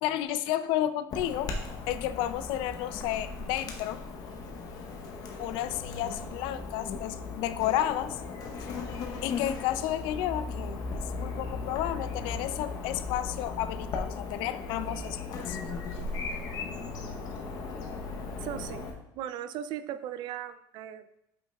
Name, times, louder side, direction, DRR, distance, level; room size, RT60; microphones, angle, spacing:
voice 1, 0.0-1.5 1.9-4.0 5.4-8.2 9.2-15.6, left 12 dB, 80° left, 13 dB, 0.4 m, -32 dB
Chirp tweet / Buzz, 1.1-18.9, left 4 dB, 50° left, 0.9 m, -37 dB
voice 2, 18.4-18.8 19.1-21.0, right 10 dB, 60° right, 12 dB, 0.4 m, -37 dB
8.2 x 5.2 x 2.3 m, 0.80 s
cardioid pair, 165°, 9 cm